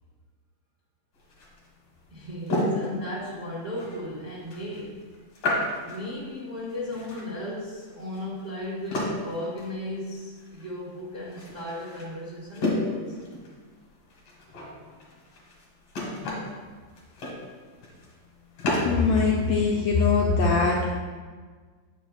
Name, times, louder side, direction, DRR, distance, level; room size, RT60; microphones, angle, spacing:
sound 1, 1.2-19.3, left 1 dB, 55° left, 2.2 m, -33 dB
voice 1, 2.1-5.0 5.8-13.2, left 1 dB, 55° right, -9 dB, 0.7 m, -35 dB
voice 2, 18.8-20.9, left 4 dB, 80° left, -4 dB, 1.5 m, -22 dB
8.7 x 5.7 x 2.3 m, 1.5 s
omnidirectional pair, 3.7 m